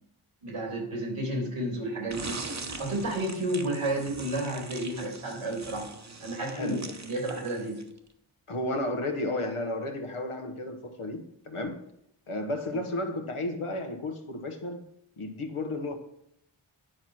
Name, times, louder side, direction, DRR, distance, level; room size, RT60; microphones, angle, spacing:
voice 1, 0.4-5.9 6.2-7.8 12.7-12.8, right 1 dB, 80° right, 3.0 m, -32 dB
sound 1, 2.1-8.0, right 3 dB, 35° right, 1.0 m, -42 dB
voice 2, 6.5-6.9 8.5-11.9 12.3-14.8 15.2-15.9, left 1 dB, 80° left, 1.3 m, -33 dB
10.0 x 4.3 x 6.3 m
cardioid pair, 45°, 50 cm